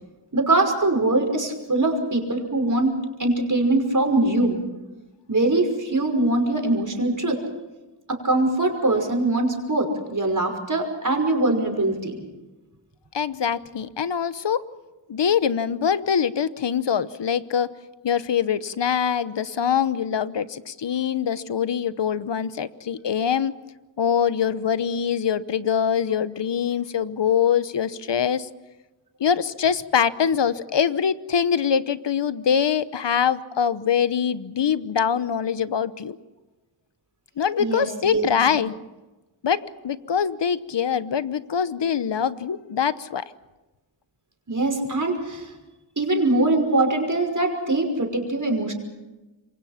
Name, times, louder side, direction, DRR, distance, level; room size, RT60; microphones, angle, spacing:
voice 1, 0.3-2.9 3.2-4.6 5.3-7.4 8.1-12.2 37.6-38.3 44.5-45.5 46.0-48.7, right 2 dB, 40° right, 4 dB, 5.7 m, -22 dB
voice 2, 13.1-14.6 15.1-17.7 18.0-23.6 24.0-28.5 29.2-36.2 37.4-38.7 39.4-43.2, left 7 dB, 65° left, 14 dB, 1.0 m, -23 dB
27.0 x 24.0 x 5.8 m, 1.1 s
wide cardioid pair, 65°, 45 cm